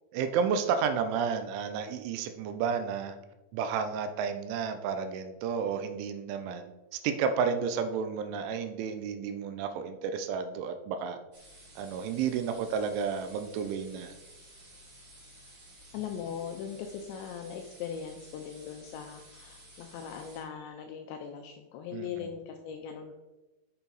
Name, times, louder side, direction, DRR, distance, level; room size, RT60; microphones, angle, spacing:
voice 1, 0.1-3.2 3.5-11.2 11.8-14.1 21.9-22.3, right 6 dB, 80° right, 8 dB, 2.9 m, -31 dB
sound 1, 11.3-20.4, right 1 dB, 60° right, 0.9 m, -54 dB
voice 2, 15.9-23.1, left 8 dB, 85° left, 4 dB, 2.6 m, -40 dB
8.3 x 6.8 x 4.0 m, 1.1 s
omnidirectional pair, 5.7 m